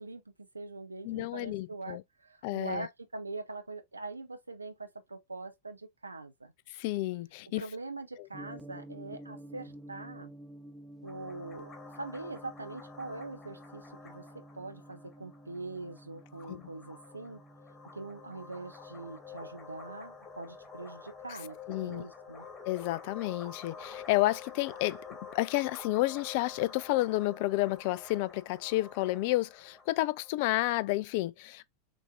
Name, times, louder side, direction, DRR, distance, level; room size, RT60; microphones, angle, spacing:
voice 1, 0.0-6.5 7.6-10.3 11.0-14.2 14.5-17.4 17.9-22.5, right 3 dB, 85° right, 0.6 m, -43 dB
voice 2, 1.0-2.0 2.4-2.9 6.7-7.6 8.2-8.3 16.5-16.7 21.7-22.0 22.7-25.0 25.3-31.7, left 18 dB, 55° left, 0.3 m, -31 dB
Gong, 8.3-22.5, right 1 dB, 5° right, 0.8 m, -52 dB
sound 1, 11.1-30.3, left 5 dB, 25° left, 1.8 m, -49 dB
6.0 x 2.6 x 2.5 m
figure-of-eight pair, 90°, 0 cm